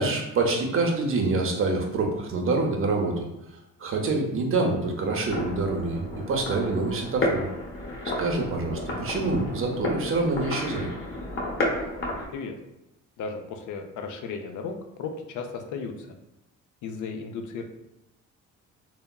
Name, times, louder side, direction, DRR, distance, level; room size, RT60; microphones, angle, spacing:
voice 1, 0.0-3.3 3.8-7.5 8.2-10.9, right 3 dB, 45° right, 2 dB, 0.6 m, -26 dB
sound 1, 5.3-12.3, left 1 dB, 45° left, 0.8 m, -31 dB
voice 2, 13.2-16.2 16.8-17.6, left 5 dB, 75° left, 4 dB, 0.5 m, -35 dB
3.4 x 2.0 x 2.3 m, 0.88 s
cardioid pair, 90°, 30 cm